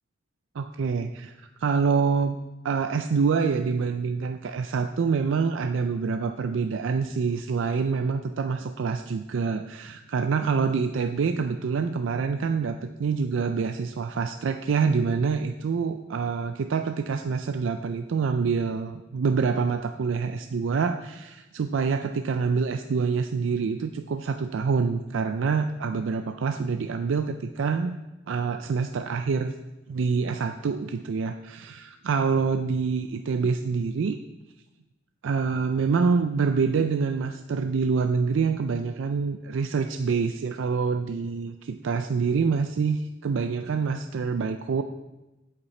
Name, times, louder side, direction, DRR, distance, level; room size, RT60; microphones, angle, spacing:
voice 1, 0.6-2.4 2.6-28.0 28.3-29.5 29.9-34.2 35.2-44.8, right 5 dB, 80° right, 8 dB, 0.4 m, -26 dB
8.3 x 8.0 x 4.2 m, 1.0 s
head